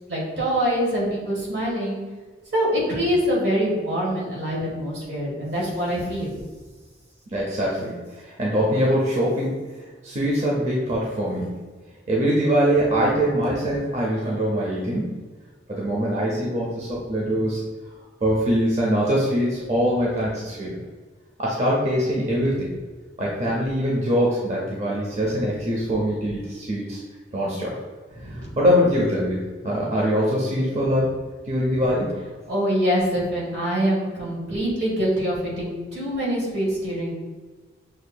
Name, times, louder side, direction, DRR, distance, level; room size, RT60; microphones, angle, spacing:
voice 1, 0.1-2.0 2.5-6.3 28.2-28.5 32.5-37.1, equal, 65° right, -4 dB, 1.4 m, -24 dB
voice 2, 7.3-9.6 10.0-11.6 12.1-15.2 15.7-17.6 18.2-20.8 21.4-22.7 23.2-27.0 27.3-27.8 28.2-31.2 31.4-32.2, equal, 40° right, -4 dB, 0.6 m, -23 dB
6.3 x 2.7 x 2.3 m, 1.4 s
head